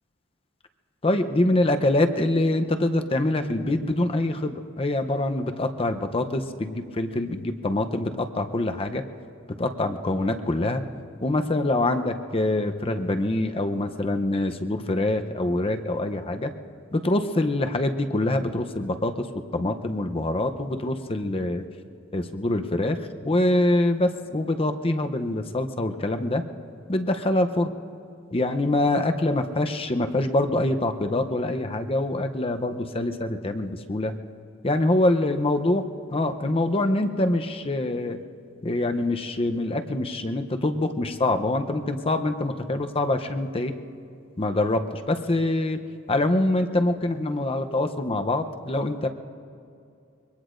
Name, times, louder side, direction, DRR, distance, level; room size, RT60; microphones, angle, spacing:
voice 1, 1.0-9.0 9.5-10.8 11.2-16.5 16.9-19.3 19.5-21.6 22.1-23.0 23.2-26.4 26.9-27.7 28.3-34.1 34.6-35.8 36.1-38.2 38.6-43.7 44.4-45.8 46.1-49.1, left 2 dB, 30° left, 7 dB, 0.7 m, -25 dB
25.0 x 22.5 x 2.6 m, 2.4 s
head